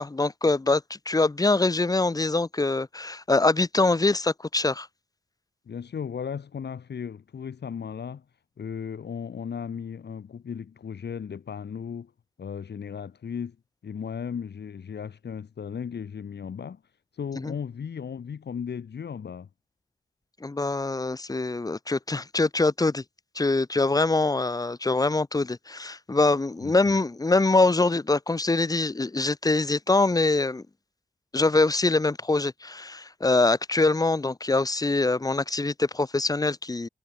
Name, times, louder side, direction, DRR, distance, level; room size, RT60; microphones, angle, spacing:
voice 1, 0.0-4.9 17.4-17.5 20.4-23.0 23.3-30.6 31.3-36.9, left 3 dB, 20° left, 1.2 m, -24 dB
voice 2, 5.7-8.2 8.6-12.1 12.4-13.6 13.8-16.8 17.1-19.5 26.6-26.9, left 7 dB, 85° left, 6.3 m, -36 dB
wide cardioid pair, 120°, 17 cm